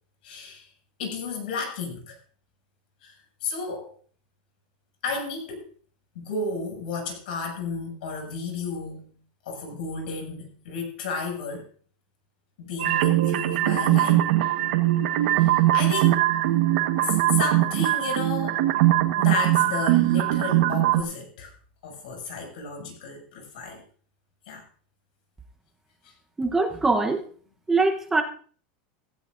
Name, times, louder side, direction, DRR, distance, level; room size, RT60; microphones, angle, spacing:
voice 1, 0.2-0.7 1.0-2.2 3.0-3.9 5.0-5.7 6.2-9.2 9.4-11.7 12.6-14.3 15.3-16.2 17.0-18.6 19.2-21.5 21.8-23.8 24.5-24.6 26.0-26.1, left 4 dB, 80° left, 2 dB, 7.0 m, -33 dB
sound 1, 12.8-21.0, right 15 dB, 70° right, 1.4 m, -21 dB
voice 2, 26.4-27.2 27.7-28.2, right 3 dB, 10° right, 4 dB, 1.0 m, -22 dB
16.5 x 15.5 x 2.6 m, 0.44 s
supercardioid pair, 160°, 5 cm